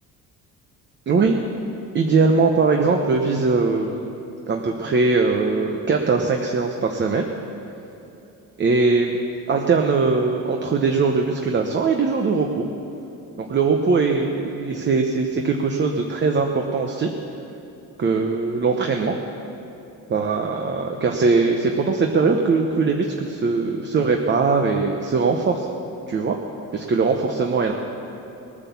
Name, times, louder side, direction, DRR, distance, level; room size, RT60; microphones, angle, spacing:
voice 1, 1.1-1.4 1.9-4.0 4.5-7.3 8.6-9.2 9.5-12.7 13.4-17.1 18.0-19.2 20.1-25.7 26.1-26.4 26.7-27.7, right 4 dB, 35° right, 3 dB, 1.0 m, -21 dB
19.5 x 9.8 x 7.1 m, 2.8 s
cardioid pair, 135°, 33 cm